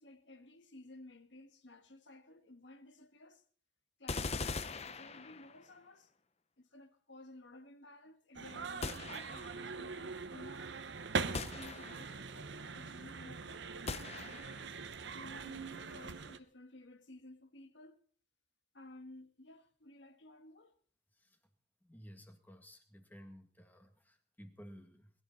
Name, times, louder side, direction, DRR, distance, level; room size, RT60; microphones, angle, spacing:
voice 1, 0.0-3.4 4.0-6.1 6.6-13.7 15.1-18.0 18.7-20.7, left 2 dB, 60° left, 1.6 m, -55 dB
sound 1, 4.1-5.7 8.8-9.7 11.3-12.3 13.9-14.7, left 4 dB, 35° left, 0.7 m, -41 dB
sound 2, 8.3-16.4, right 4 dB, 60° right, 0.9 m, -42 dB
voice 2, 21.8-25.1, equal, 10° left, 1.8 m, -55 dB
21.5 x 12.5 x 4.0 m
head